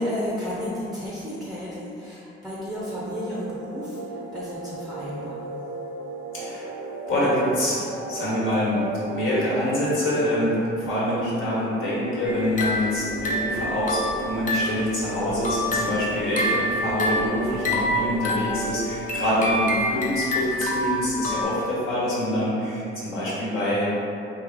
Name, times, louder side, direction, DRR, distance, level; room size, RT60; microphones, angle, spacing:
voice 1, 0.0-5.5, equal, ahead, -7 dB, 0.6 m, -32 dB
sound 1, 2.8-19.8, right 4 dB, 85° right, 0.4 m, -36 dB
voice 2, 6.3-6.7 7.1-7.8 8.1-23.9, left 1 dB, 75° left, -8 dB, 1.3 m, -25 dB
sound 2, 12.3-14.9 15.3-21.4, left 1 dB, 40° left, 0.7 m, -27 dB
3.3 x 2.8 x 3.5 m, 2.7 s
cardioid pair, 100°, 21 cm